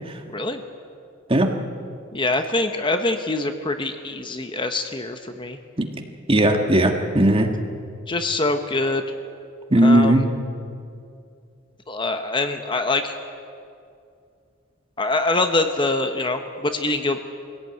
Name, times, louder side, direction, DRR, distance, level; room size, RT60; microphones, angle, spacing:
voice 1, 0.3-0.6 2.1-5.6 8.1-9.0 9.8-10.2 11.9-13.2 15.0-17.2, left 2 dB, 25° left, 7 dB, 1.0 m, -24 dB
voice 2, 6.3-7.5 9.7-10.3, right 1 dB, 30° right, 4 dB, 1.7 m, -17 dB
22.5 x 17.0 x 9.3 m, 2.4 s
head